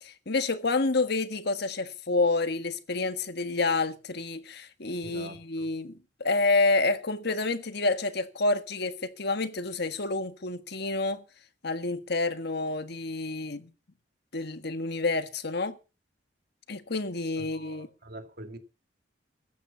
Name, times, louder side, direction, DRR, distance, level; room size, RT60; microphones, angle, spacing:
voice 1, 0.0-11.2 11.6-13.7 14.3-15.7 16.7-17.9, left 3 dB, 60° left, 1.6 m, -28 dB
voice 2, 5.0-5.7 17.4-18.6, right 1 dB, 55° right, 2.5 m, -45 dB
15.0 x 9.6 x 7.0 m
head